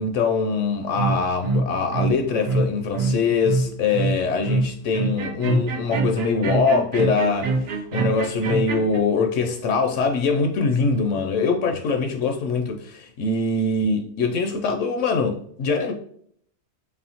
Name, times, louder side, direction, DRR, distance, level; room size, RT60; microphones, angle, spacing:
voice 1, 0.0-15.9, left 4 dB, 75° left, 0.9 m, -23 dB
sound 1, 0.9-9.0, right 3 dB, 60° right, 0.7 m, -25 dB
4.1 x 3.3 x 2.8 m
omnidirectional pair, 1.4 m